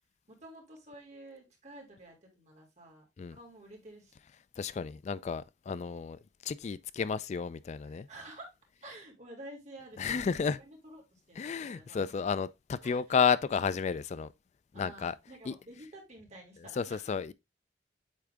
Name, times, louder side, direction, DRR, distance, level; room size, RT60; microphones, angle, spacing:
voice 1, 0.3-4.1 7.8-8.5 8.8-12.2 12.8-13.2 14.7-17.1, right 1 dB, 40° right, 2.8 m, -51 dB
voice 2, 4.6-8.1 10.0-10.6 11.4-14.3 14.7-15.2 15.5-15.6 16.7-17.3, left 6 dB, 40° left, 0.3 m, -32 dB
8.5 x 3.6 x 3.4 m
head